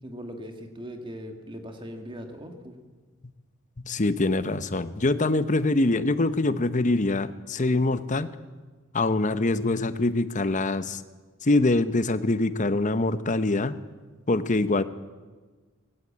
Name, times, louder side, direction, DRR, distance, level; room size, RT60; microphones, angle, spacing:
voice 1, 0.0-2.8, equal, 25° right, 5 dB, 2.1 m, -39 dB
voice 2, 3.8-8.3 8.9-11.0 11.4-13.8 14.3-14.8, left 2 dB, 35° left, 13 dB, 0.8 m, -24 dB
19.0 x 16.5 x 8.6 m, 1.4 s
head